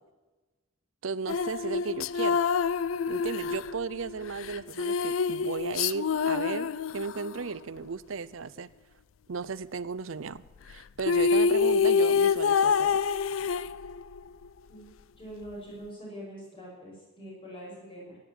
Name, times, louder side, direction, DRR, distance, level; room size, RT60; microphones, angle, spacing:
voice 1, 1.0-2.4 3.1-8.7 9.3-10.4 10.7-13.0, right 5 dB, 85° right, 18 dB, 0.6 m, -35 dB
sound 1, 1.3-7.4 10.7-10.8 11.0-14.2, left 6 dB, 85° left, 0.4 m, -26 dB
voice 2, 15.2-18.2, equal, 25° left, -4 dB, 6.4 m, -43 dB
16.0 x 9.6 x 8.8 m, 1.2 s
head